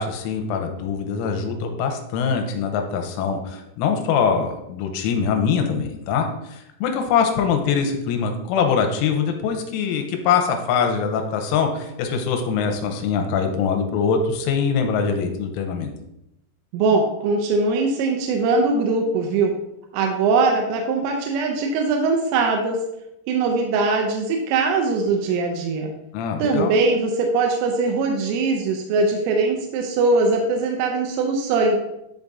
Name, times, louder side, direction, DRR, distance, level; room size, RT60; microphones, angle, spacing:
voice 1, 0.0-15.9 26.1-26.8, left 6 dB, 85° left, 4 dB, 3.2 m, -23 dB
voice 2, 16.7-19.5 19.9-22.8 23.3-25.9 26.4-31.8, right 3 dB, 85° right, 2 dB, 3.2 m, -21 dB
10.5 x 3.5 x 2.6 m, 0.85 s
omnidirectional pair, 5.7 m